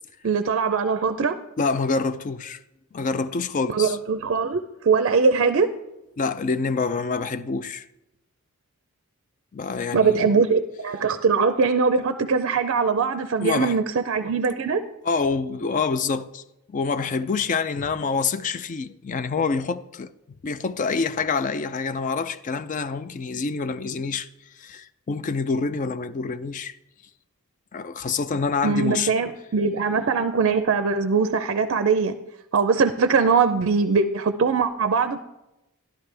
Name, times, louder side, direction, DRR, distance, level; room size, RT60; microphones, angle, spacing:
voice 1, 0.2-1.4 3.7-5.7 9.9-14.8 28.6-32.1 32.5-35.2, right 5 dB, 60° right, 0.5 m, -21 dB
voice 2, 1.6-2.6 2.9-4.0 6.2-7.9 9.5-10.4 13.4-13.8 15.0-16.4 16.7-20.1 20.4-26.8 27.7-29.1, left 4 dB, 35° left, 0.4 m, -26 dB
12.0 x 11.5 x 3.3 m
head